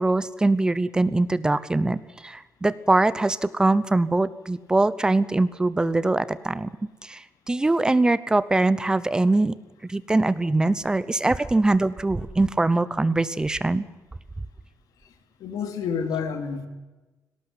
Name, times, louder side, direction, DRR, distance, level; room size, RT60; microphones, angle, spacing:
voice 1, 0.0-6.7 7.0-9.5 9.8-13.8, right 2 dB, 10° right, 16 dB, 0.8 m, -22 dB
voice 2, 15.4-16.7, left 6 dB, 90° left, 7 dB, 3.1 m, -29 dB
19.0 x 18.0 x 9.8 m, 1.1 s
cardioid pair, 155°, 6 cm